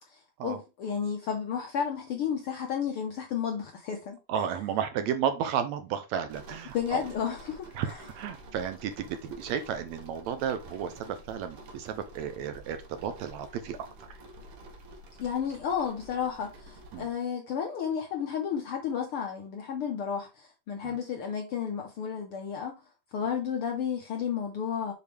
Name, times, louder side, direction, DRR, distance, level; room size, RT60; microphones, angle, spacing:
voice 1, 0.0-4.5 6.7-8.0 15.2-22.8 23.1-24.9, left 7 dB, 70° left, 1.4 m, -32 dB
voice 2, 4.3-7.0 7.8-13.8 16.9-17.1 20.8-21.0, right 8 dB, 75° right, 1.8 m, -33 dB
sound 1, 6.3-17.1, right 1 dB, 60° right, 1.9 m, -49 dB
7.0 x 4.8 x 3.3 m
omnidirectional pair, 3.5 m